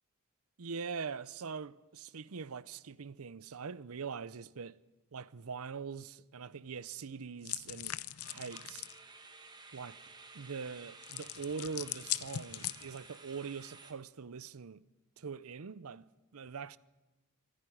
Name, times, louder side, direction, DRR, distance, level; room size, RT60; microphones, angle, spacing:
voice 1, 0.6-4.8 5.1-8.0 8.3-8.9 9.7-10.0 10.3-14.8 15.2-16.8, right 5 dB, 80° right, 0.7 m, -43 dB
sound 1, 2.0-2.3 2.6-2.8 3.2-3.3 8.2-13.9, right 3 dB, 20° right, 1.8 m, -54 dB
sound 2, 7.4-9.0 11.0-13.2, left 13 dB, 85° left, 0.7 m, -40 dB
26.0 x 11.0 x 10.0 m
head